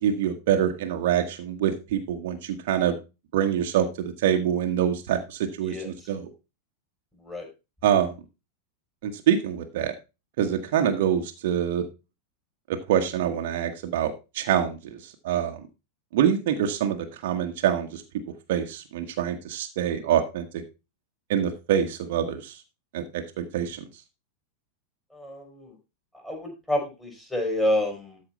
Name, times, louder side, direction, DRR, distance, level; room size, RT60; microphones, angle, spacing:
voice 1, 0.0-3.0 3.3-6.3 7.8-8.1 9.0-9.9 10.4-11.8 12.7-15.6 16.1-18.0 18.5-20.6 21.3-22.6 22.9-23.8, right 9 dB, 55° right, 4 dB, 1.4 m, -25 dB
voice 2, 25.1-25.7 26.2-28.2, left 1 dB, 5° left, 0 dB, 4.5 m, -28 dB
13.0 x 5.0 x 4.2 m, 0.27 s
figure-of-eight pair, 90°, 0 cm